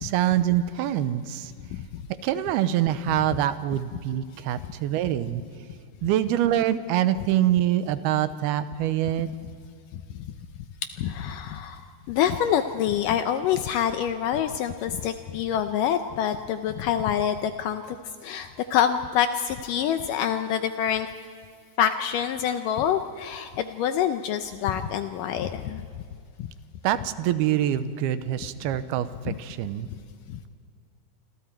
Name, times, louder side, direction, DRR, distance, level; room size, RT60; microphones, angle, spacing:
voice 1, 0.0-1.5 2.2-5.4 6.0-9.3 26.8-29.1 29.4-29.9, right 12 dB, 90° right, 12 dB, 2.7 m, -25 dB
voice 2, 1.7-2.0 4.6-4.7 9.9-10.0 11.0-11.8 12.1-18.0 18.2-21.1 21.8-25.9 26.4-26.5 29.3-29.4 30.3-30.4, left 9 dB, 80° left, 8 dB, 2.0 m, -26 dB
27.5 x 26.0 x 4.5 m, 2.3 s
omnidirectional pair, 4.5 m